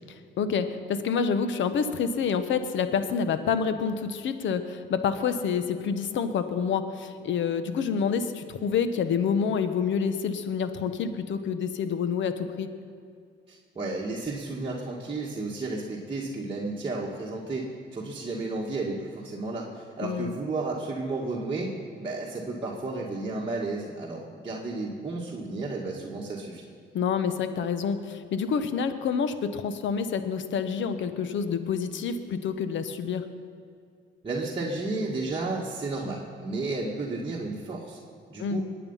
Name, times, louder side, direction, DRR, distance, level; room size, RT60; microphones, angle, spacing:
voice 1, 0.4-12.7 20.0-20.3 26.9-33.3 38.4-38.6, left 6 dB, 70° left, 10 dB, 1.1 m, -28 dB
voice 2, 13.5-26.7 34.2-38.0 38.3-38.6, right 3 dB, 25° right, -4 dB, 2.0 m, -32 dB
21.5 x 9.1 x 5.7 m, 2.3 s
cardioid pair, 90°, 20 cm